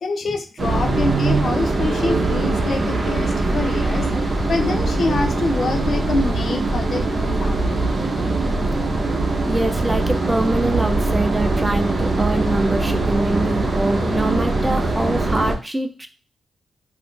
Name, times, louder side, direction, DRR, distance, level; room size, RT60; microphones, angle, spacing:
voice 1, 0.0-4.1 4.5-7.9, left 3 dB, 65° left, 5 dB, 0.5 m, -25 dB
sound 1, 0.6-15.6, right 2 dB, 45° right, 0.7 m, -21 dB
voice 2, 9.4-16.1, right 1 dB, 15° right, 7 dB, 0.4 m, -24 dB
2.5 x 2.4 x 3.6 m, 0.33 s
cardioid pair, 100°, 0 cm